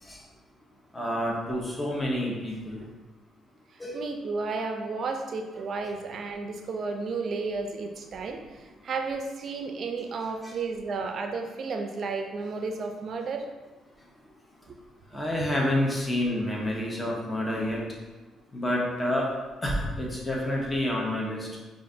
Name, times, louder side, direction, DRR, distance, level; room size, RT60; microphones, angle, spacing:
voice 1, 0.9-2.8 3.8-4.0 10.4-10.5 15.1-17.8 18.5-19.3 19.6-21.5, left 1 dB, 15° left, -3 dB, 0.8 m, -28 dB
voice 2, 3.7-13.5 14.7-14.8, right 4 dB, 55° right, 4 dB, 0.4 m, -33 dB
4.9 x 2.5 x 2.6 m, 1.2 s
cardioid pair, 90°, 0 cm